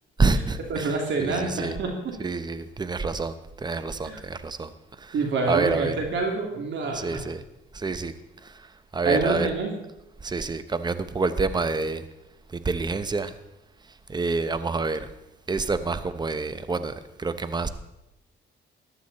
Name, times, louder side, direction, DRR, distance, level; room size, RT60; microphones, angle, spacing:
voice 1, 0.2-0.9 1.2-1.8 2.2-4.7 5.0-5.1 5.5-6.0 6.9-7.4 7.7-8.1 8.4-9.5 10.2-12.0 12.5-13.4 14.1-15.1 15.5-17.7, right 3 dB, 20° right, 12 dB, 0.9 m, -27 dB
voice 2, 0.7-2.1 4.0-4.2 5.1-7.2 9.0-9.7, right 3 dB, 70° right, 1 dB, 2.9 m, -27 dB
14.5 x 11.5 x 4.2 m, 0.90 s
cardioid pair, 90°, 20 cm